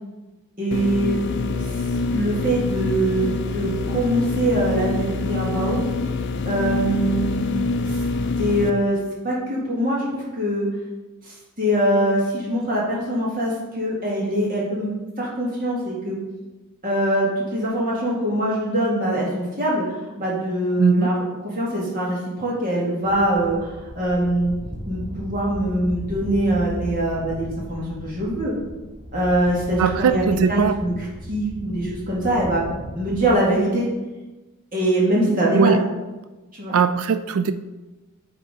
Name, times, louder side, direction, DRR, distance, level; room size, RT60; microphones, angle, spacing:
voice 1, 0.6-1.2 2.1-5.8 6.5-7.4 7.9-8.0 8.4-9.0 9.2-10.7 11.3-14.9 15.2-16.2 16.8-19.8 20.2-24.5 24.9-28.5 29.1-30.9 31.3-32.7 33.0-33.9 34.7-35.8 36.5-36.8, right 1 dB, 40° right, -5 dB, 2.0 m, -23 dB
sound 1, 0.7-8.7, left 3 dB, 50° left, 0.4 m, -25 dB
voice 2, 20.8-21.1 29.8-30.8 35.5-35.8 36.7-37.5, right 6 dB, 70° right, 10 dB, 0.3 m, -20 dB
sound 2, 23.0-33.4, equal, 15° left, 2.3 m, -36 dB
9.5 x 3.6 x 3.8 m, 1.1 s
head